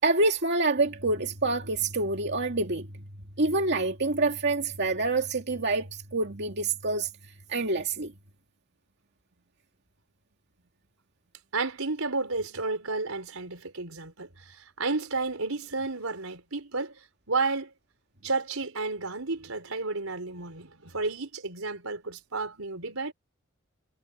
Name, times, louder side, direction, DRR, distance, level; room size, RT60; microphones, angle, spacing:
voice 1, 0.0-2.9 3.4-7.1 7.5-8.1, right 3 dB, 55° right, 2.4 m, -26 dB
voice 2, 11.5-17.0 17.3-17.7 18.2-23.1, right 3 dB, 85° right, 4.5 m, -32 dB
head